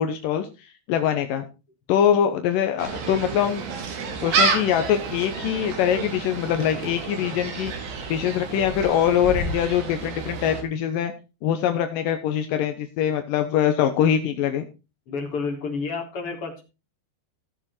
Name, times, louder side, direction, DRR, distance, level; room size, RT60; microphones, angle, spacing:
voice 1, 0.0-1.4 1.9-3.6 4.2-11.1 11.4-14.6, left 9 dB, 75° left, 7 dB, 2.1 m, -23 dB
Gull seagull, 2.8-10.6, right 4 dB, 75° right, 5.2 m, -29 dB
voice 2, 15.1-16.6, left 4 dB, 35° left, 2 dB, 4.0 m, -30 dB
17.0 x 7.1 x 4.3 m, 0.29 s
omnidirectional pair, 5.1 m